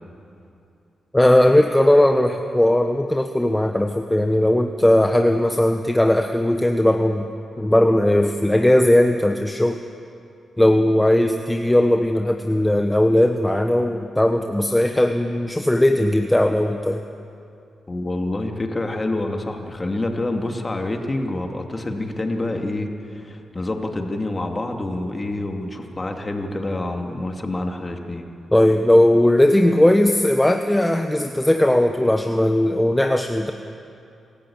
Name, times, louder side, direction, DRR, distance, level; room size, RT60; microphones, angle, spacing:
voice 1, 1.1-7.3 7.6-9.8 10.6-17.0 28.5-33.5, left 1 dB, 10° left, 5 dB, 1.1 m, -18 dB
voice 2, 17.9-28.3, left 2 dB, 25° left, 3 dB, 2.5 m, -27 dB
27.5 x 13.5 x 8.8 m, 2.6 s
cardioid pair, 65°, 0 cm